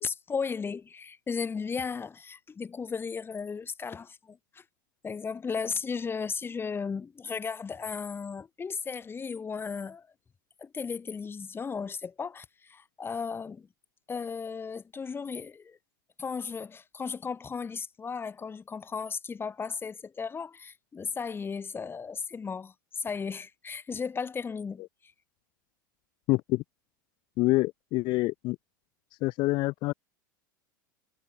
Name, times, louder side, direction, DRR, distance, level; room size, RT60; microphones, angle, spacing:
voice 1, 0.0-4.6 5.0-10.1 10.6-13.7 14.1-15.8 16.2-24.8, left 5 dB, 20° left, 2.5 m, -35 dB
voice 2, 26.3-26.6 27.4-28.6 29.2-29.9, left 21 dB, 45° left, 0.4 m, -26 dB
hypercardioid pair, 90°, 11 cm